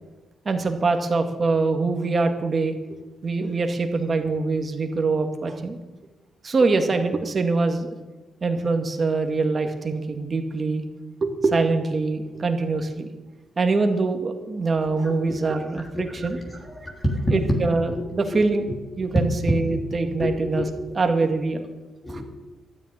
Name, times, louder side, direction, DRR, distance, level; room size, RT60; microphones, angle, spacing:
voice 1, 0.5-2.8 3.2-5.8 6.4-7.9 8.4-10.8 11.2-13.1 13.6-16.6 17.3-18.7 19.0-20.7 21.0-21.7 22.1-22.2, right 3 dB, 35° right, 5 dB, 2.2 m, -24 dB
voice 2, 15.0-15.4 15.9-16.1 16.5-17.3 18.0-18.1 18.3-18.4 19.2-19.8 20.2-20.7 22.0-22.2, equal, 20° left, 0 dB, 3.5 m, -27 dB
13.0 x 9.6 x 9.9 m, 1.1 s
cardioid pair, 100°, 0 cm